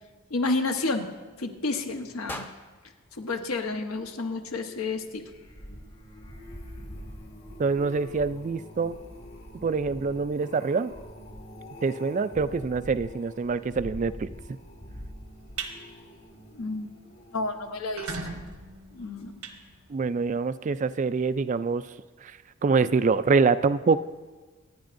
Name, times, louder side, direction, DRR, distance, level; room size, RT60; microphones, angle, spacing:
voice 1, 0.3-2.5 3.1-5.3 16.5-16.9 17.3-18.1 18.9-19.4, left 3 dB, 80° left, 5 dB, 1.1 m, -30 dB
sound 1, 2.3-4.4, left 1 dB, 10° left, 0.6 m, -44 dB
sound 2, 5.1-18.4 19.0-19.3 19.6-19.7, equal, 45° left, 1.8 m, -45 dB
voice 2, 7.6-9.0 9.6-10.9 11.8-14.3 19.9-21.8 22.2-22.4 22.6-24.0, right 4 dB, 35° right, 14 dB, 0.3 m, -25 dB
sound 3, 15.3-15.7 16.2-16.4 16.8-16.9 17.1-17.2 17.7-20.3, right 4 dB, 85° right, 1.2 m, -38 dB
25.0 x 9.6 x 2.6 m, 1.3 s
head